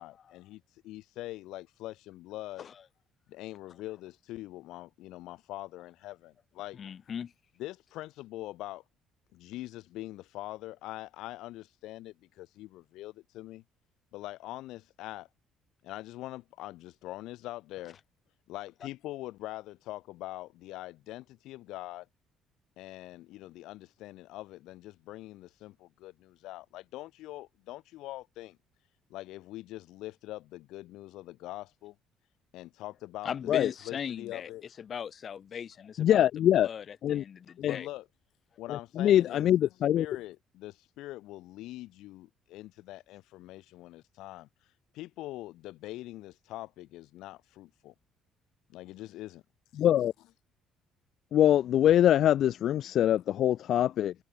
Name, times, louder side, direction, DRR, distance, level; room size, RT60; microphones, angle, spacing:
voice 1, 0.0-2.7 3.3-6.8 7.6-8.8 9.3-13.6 14.1-15.3 15.8-18.0 18.5-22.1 22.8-28.6 29.1-31.9 32.5-33.3 33.6-34.7 37.6-38.1 38.6-39.7 40.0-44.5 44.9-47.9 48.7-49.4, left 16 dB, 80° left, 0.7 m, -43 dB
voice 2, 6.7-7.3 33.2-34.5 34.8-36.2 36.5-37.9, left 7 dB, 45° left, 1.4 m, -38 dB
voice 3, 36.0-36.7 37.0-37.2 37.6-37.7 38.7-40.1 49.8-50.1 51.3-54.1, left 11 dB, 65° left, 0.3 m, -24 dB
cardioid pair, 100°, 0 cm